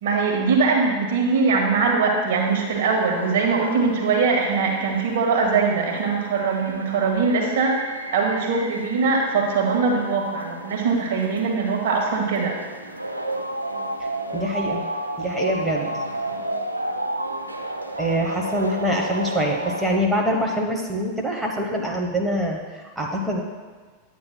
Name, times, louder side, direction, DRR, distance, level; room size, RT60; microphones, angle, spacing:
voice 1, 0.0-12.6, right 4 dB, 55° right, 0 dB, 1.5 m, -22 dB
sound 1, 2.3-20.0, right 1 dB, 85° right, 0.5 m, -33 dB
voice 2, 14.0-14.8 15.2-15.9 18.0-23.4, equal, 10° right, -1 dB, 1.0 m, -25 dB
11.0 x 8.8 x 2.2 m, 1.4 s
figure-of-eight pair, 90°, 0 cm